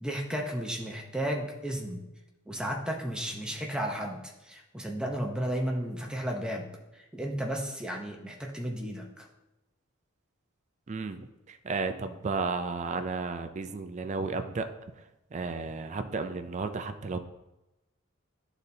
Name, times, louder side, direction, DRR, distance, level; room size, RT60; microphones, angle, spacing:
voice 1, 0.0-2.0 2.5-9.3, equal, 5° right, 0 dB, 0.8 m, -34 dB
voice 2, 10.9-14.7 15.3-17.2, right 4 dB, 35° right, 8 dB, 0.4 m, -33 dB
12.0 x 4.0 x 2.7 m, 0.96 s
head